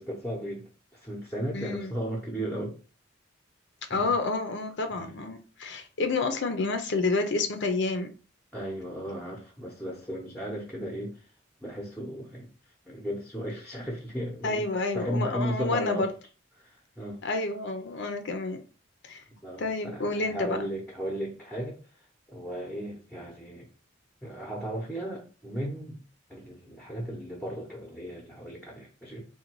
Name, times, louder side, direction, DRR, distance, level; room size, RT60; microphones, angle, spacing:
voice 1, 0.0-2.7 3.9-4.1 4.9-5.2 8.5-11.2 11.6-12.5 12.8-16.1 16.6-17.2 19.4-21.8 22.3-23.7 24.2-26.0 26.3-29.2, equal, 5° left, 0.8 m, -35 dB
voice 2, 1.5-2.0 3.9-8.1 14.4-16.1 17.2-18.6 19.0-19.2 19.6-20.6, left 3 dB, 60° left, 0.6 m, -29 dB
3.9 x 2.2 x 4.5 m
head